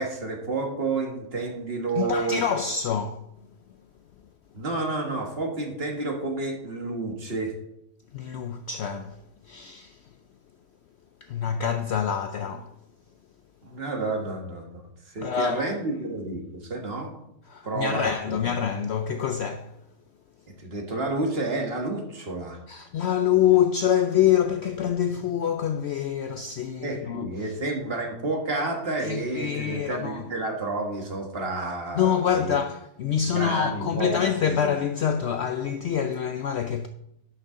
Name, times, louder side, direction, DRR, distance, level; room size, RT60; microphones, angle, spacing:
voice 1, 0.0-2.4 4.5-7.5 13.6-17.1 17.6-18.4 20.5-22.6 25.1-25.2 26.8-32.6 33.3-34.6, right 2 dB, 45° right, 1.5 m, -30 dB
voice 2, 2.0-3.2 8.1-9.1 9.5-10.0 11.3-12.7 15.2-15.7 17.5-19.7 22.7-27.3 29.1-30.2 31.9-36.9, left 9 dB, 65° left, 0.6 m, -26 dB
11.0 x 6.5 x 3.7 m
omnidirectional pair, 1.5 m